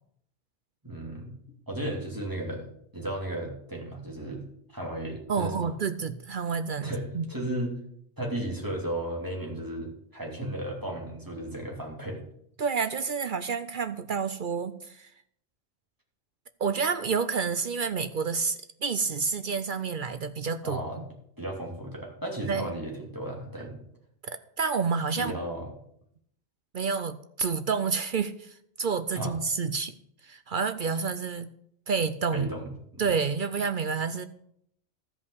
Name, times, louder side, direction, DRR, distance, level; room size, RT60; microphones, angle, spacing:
voice 1, 0.8-1.4 1.7-2.7 2.9-4.4 4.7-5.7 6.8-7.8 8.2-12.2 20.6-21.0 21.4-23.8 25.2-25.7 29.1-29.3 32.3-33.1, right 1 dB, 15° right, -1 dB, 2.8 m, -34 dB
voice 2, 5.3-7.2 12.6-15.1 16.6-21.0 22.5-22.7 24.2-25.3 26.7-30.0 30.2-31.5 31.9-32.5 33.0-34.3, right 5 dB, 55° right, 11 dB, 0.7 m, -29 dB
13.5 x 5.4 x 8.1 m, 0.70 s
omnidirectional pair, 1.1 m